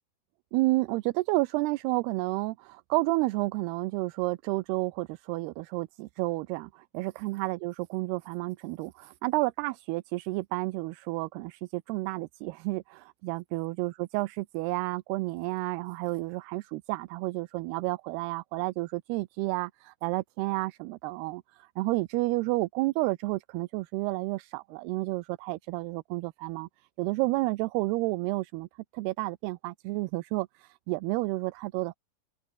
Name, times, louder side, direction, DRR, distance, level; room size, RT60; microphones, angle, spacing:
voice 1, 0.5-26.7 27.0-28.7 28.9-32.0, right 22 dB, 80° right, 2.6 m, -31 dB
open air
omnidirectional pair, 4.8 m